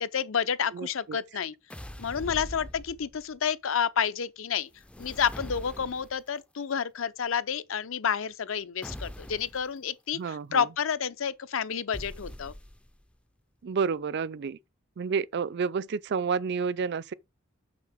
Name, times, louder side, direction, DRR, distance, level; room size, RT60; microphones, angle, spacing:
voice 1, 0.0-1.5 2.0-4.7 5.0-12.5, left 7 dB, 70° left, 0.6 m, -30 dB
sound 1, 1.7-3.3 4.7-6.3 8.8-9.7 11.9-13.0, equal, 5° left, 0.4 m, -42 dB
voice 2, 10.1-10.6 13.6-14.6 15.0-17.1, right 5 dB, 55° right, 0.4 m, -30 dB
6.5 x 6.2 x 5.0 m
head